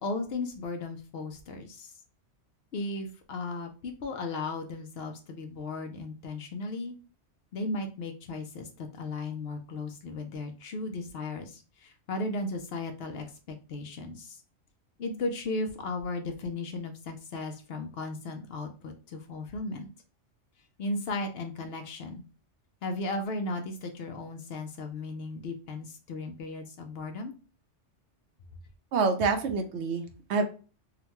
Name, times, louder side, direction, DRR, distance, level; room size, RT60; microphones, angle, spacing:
voice 1, 0.0-1.9 2.7-6.9 7.5-14.4 15.0-19.9 20.8-22.2 22.8-27.3, left 2 dB, 65° left, 5 dB, 0.8 m, -36 dB
voice 2, 28.9-30.4, right 4 dB, 70° right, 6 dB, 0.9 m, -27 dB
3.8 x 2.2 x 2.8 m, 0.35 s
omnidirectional pair, 1.2 m